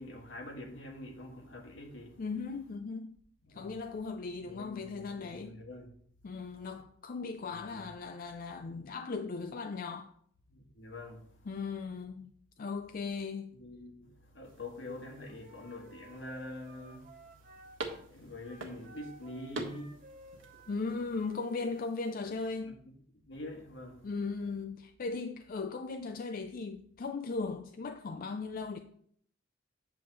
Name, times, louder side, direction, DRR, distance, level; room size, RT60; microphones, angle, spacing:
voice 1, 0.0-2.2 3.4-3.8 4.4-5.9 6.4-6.5 7.5-7.9 10.5-11.3 13.5-17.6 18.1-20.1 22.6-22.7 23.2-24.1, left 1 dB, 75° left, 1.7 m, -46 dB
voice 2, 2.2-3.2 3.5-5.6 6.2-10.1 11.5-12.3 12.6-13.5 20.7-22.7 24.0-28.8, left 4 dB, 45° left, 0.4 m, -37 dB
sound 1, 14.4-22.2, right 2 dB, 85° right, 1.3 m, -47 dB
Wind instrument woodwind instrument, 15.0-18.0 18.4-21.8, right 1 dB, 45° right, 1.2 m, -56 dB
8.9 x 3.4 x 6.6 m
head